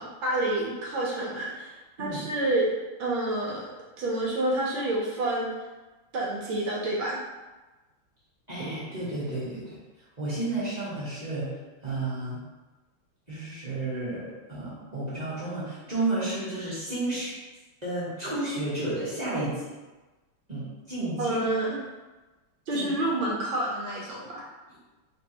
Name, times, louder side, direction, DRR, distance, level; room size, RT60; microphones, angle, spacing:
voice 1, 0.0-1.7 2.0-2.7 3.0-3.7 4.0-5.5 6.1-7.2 21.2-21.8 22.7-24.4, right 1 dB, 75° right, -4 dB, 1.6 m, -28 dB
voice 2, 8.5-9.8 10.2-11.5 11.8-12.4 13.3-17.3 17.8-19.7 20.5-21.4 22.7-22.9 23.2-23.3, right 2 dB, 25° right, -10 dB, 1.1 m, -32 dB
5.3 x 3.2 x 2.9 m, 1.2 s
omnidirectional pair, 2.2 m